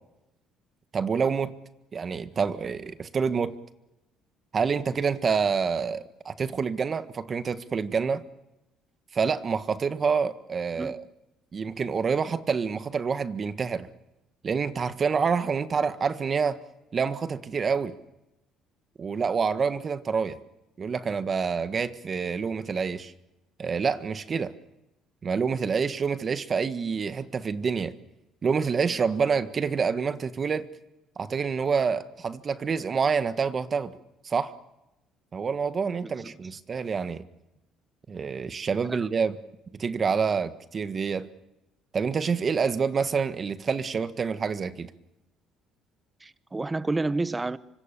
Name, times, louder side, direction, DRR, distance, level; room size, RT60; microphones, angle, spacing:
voice 1, 0.9-1.5 1.9-3.5 4.5-8.2 9.1-11.0 11.5-13.9 14.4-16.6 16.9-17.9 19.0-20.4 20.8-23.1 23.6-24.5 25.2-27.9 28.4-30.7 31.2-33.9 34.2-34.5 35.3-37.2 38.1-39.4 39.7-41.3 41.9-44.9, right 5 dB, 35° right, 1.5 m, -27 dB
voice 2, 36.0-36.3 38.9-39.1 46.2-47.6, right 2 dB, 15° right, 1.0 m, -30 dB
26.0 x 25.0 x 6.9 m
cardioid pair, 100°, 0 cm